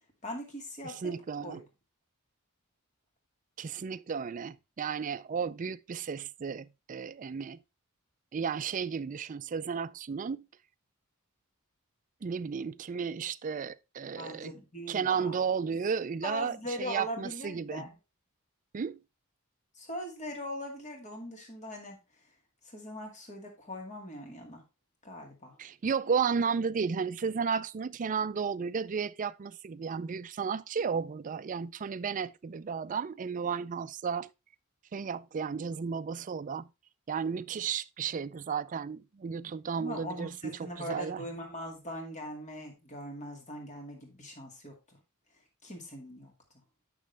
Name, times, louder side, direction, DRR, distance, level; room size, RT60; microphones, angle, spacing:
voice 1, 0.2-1.1 1.4-1.6 14.2-15.4 16.2-17.9 19.7-22.0 22.6-24.6 25.0-25.6 39.8-45.0 45.6-46.3, left 1 dB, 35° left, 2.1 m, -41 dB
voice 2, 0.8-1.6 3.6-7.6 8.3-10.5 12.2-14.5 14.9-17.8 18.7-19.0 25.6-34.3 34.9-36.7 37.1-41.3, right 6 dB, 35° right, 0.4 m, -33 dB
8.8 x 6.2 x 3.3 m
head